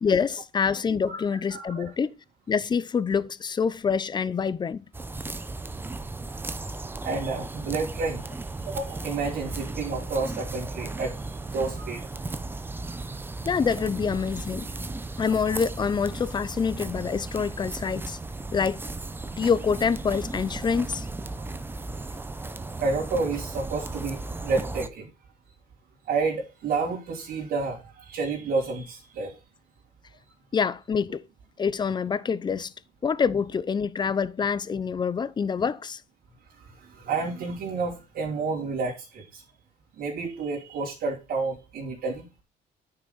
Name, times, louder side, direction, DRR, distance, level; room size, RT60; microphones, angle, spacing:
voice 1, 0.0-2.1 2.5-4.8 13.4-14.7 15.2-18.2 18.5-18.8 19.4-21.1 30.5-31.2 31.6-32.7 33.0-36.0, left 6 dB, 25° left, 0.6 m, -26 dB
voice 2, 1.5-1.9 7.0-8.2 8.7-11.1 11.5-12.0 22.8-25.1 26.1-29.3 37.0-39.4 40.0-42.3, right 4 dB, 65° right, 3.2 m, -30 dB
sound 1, 4.9-24.9, right 2 dB, 10° right, 0.7 m, -35 dB
9.6 x 5.9 x 4.1 m
cardioid pair, 110°, 17 cm